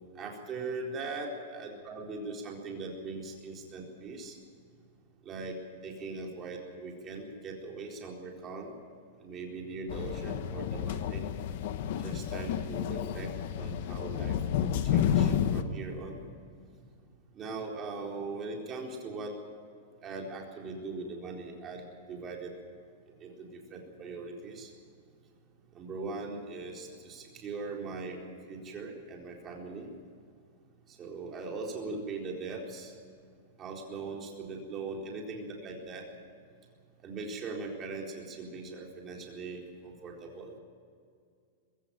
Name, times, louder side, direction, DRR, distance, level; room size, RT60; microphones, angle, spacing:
voice 1, 0.1-4.4 5.2-5.6 5.8-8.7 9.2-11.3 12.0-16.2 17.3-19.4 20.0-22.5 23.2-24.7 25.7-28.2 28.5-29.9 30.9-32.9 33.6-36.1 37.0-40.5, right 3 dB, 20° right, 0 dB, 4.1 m, -40 dB
sound 1, 9.9-15.6, left 9 dB, 55° left, 1.2 m, -30 dB
22.0 x 16.0 x 8.9 m, 2.2 s
supercardioid pair, 165°, 0 cm